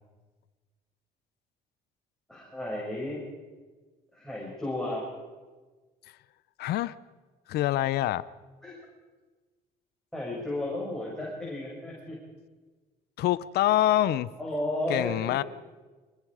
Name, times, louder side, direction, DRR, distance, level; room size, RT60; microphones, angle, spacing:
voice 1, 2.3-3.2 4.1-5.1 8.6-8.8 10.1-12.2 14.4-15.4, left 1 dB, 5° left, -5 dB, 6.7 m, -33 dB
voice 2, 6.6-7.0 7.5-8.3 13.2-14.3 14.9-15.4, left 14 dB, 70° left, 17 dB, 0.7 m, -25 dB
25.0 x 21.5 x 4.9 m, 1.3 s
cardioid pair, 110°, 17 cm